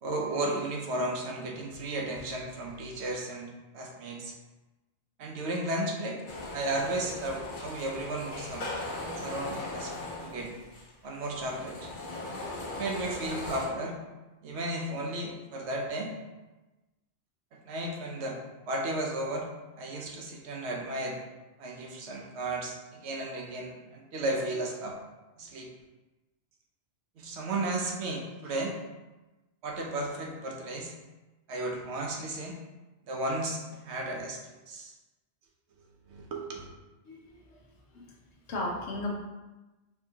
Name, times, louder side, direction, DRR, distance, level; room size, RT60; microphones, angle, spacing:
voice 1, 0.0-4.3 5.2-6.2 6.5-8.7 9.2-9.9 10.2-10.5 11.0-11.9 12.8-14.0 14.4-16.1 17.5-18.4 18.7-19.5 19.8-21.2 21.6-25.0 25.4-25.7 27.2-28.7 29.6-30.9 31.5-32.6 33.1-34.4 34.7-34.9 36.1-36.7, right 1 dB, 90° right, 0 dB, 1.0 m, -34 dB
sound 1, 6.3-13.7, left 2 dB, 50° left, 0.9 m, -39 dB
voice 2, 37.0-37.6 37.9-38.1 38.5-39.1, left 2 dB, 90° left, -2 dB, 1.1 m, -35 dB
4.4 x 2.8 x 2.7 m, 1.1 s
omnidirectional pair, 1.1 m